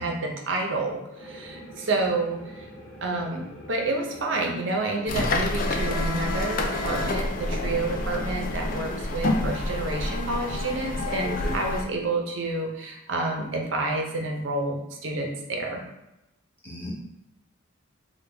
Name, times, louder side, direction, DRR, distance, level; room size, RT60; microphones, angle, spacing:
voice 1, 0.0-2.6 3.0-15.8, right 2 dB, 65° right, 2 dB, 0.5 m, -29 dB
sound 1, 1.1-6.4, equal, 75° left, 0.8 m, -45 dB
sound 2, 5.1-11.8, left 2 dB, 45° left, 0.3 m, -28 dB
voice 2, 11.2-11.6 16.6-16.9, equal, 10° left, -4 dB, 0.6 m, -35 dB
3.2 x 2.2 x 3.3 m, 0.90 s
head